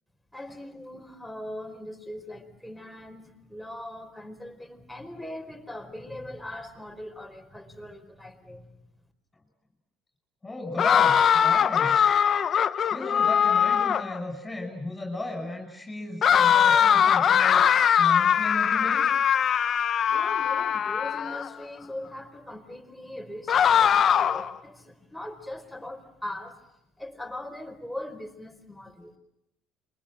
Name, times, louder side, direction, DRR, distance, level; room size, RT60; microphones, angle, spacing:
voice 1, 0.3-8.8 20.1-26.6 27.0-29.1, left 1 dB, ahead, 3 dB, 4.8 m, -40 dB
voice 2, 10.4-12.1 12.9-17.6 18.0-19.0, left 2 dB, 15° left, 3 dB, 5.8 m, -35 dB
sound 1, 10.8-14.2 16.2-21.5 23.5-24.5, left 8 dB, 45° left, 1.0 m, -21 dB
27.5 x 23.5 x 7.5 m, 0.86 s
supercardioid pair, 95°, 0 cm